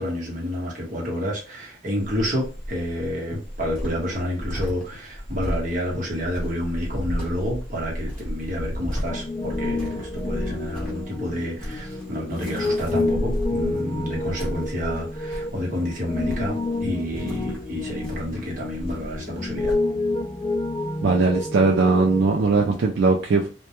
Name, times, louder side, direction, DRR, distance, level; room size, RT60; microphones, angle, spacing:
voice 1, 0.0-19.8, equal, 45° right, 1.0 m, -29 dB
Cricket, 2.0-19.7, equal, 5° left, 1.0 m, -33 dB
Piano, 9.1-22.8, left 2 dB, 25° left, 0.3 m, -29 dB
voice 2, 21.0-23.5, right 4 dB, 80° right, 0.4 m, -19 dB
2.2 x 2.2 x 2.8 m
head